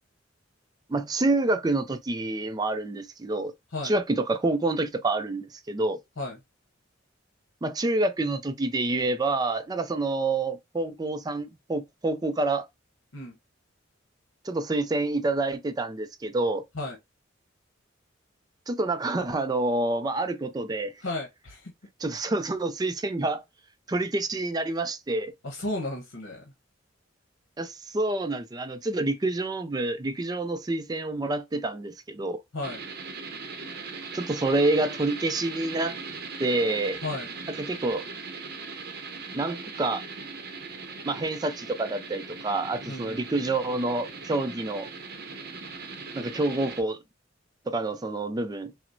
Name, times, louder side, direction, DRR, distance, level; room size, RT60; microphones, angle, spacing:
voice 1, 0.9-3.5 3.8-6.0 7.6-12.7 14.4-16.6 18.7-20.9 22.0-23.4 23.9-25.3 27.6-32.4 34.1-36.0 36.4-37.0 37.5-38.0 39.3-40.0 41.0-44.9 46.1-47.0 47.7-48.7, right 2 dB, 20° right, 0.4 m, -27 dB
voice 2, 21.0-21.7 25.4-26.4 32.5-32.8 37.0-37.3 42.9-43.2, left 2 dB, 80° left, 1.0 m, -33 dB
sound 1, 32.6-46.8, right 4 dB, 50° right, 0.7 m, -39 dB
5.9 x 2.1 x 2.6 m
head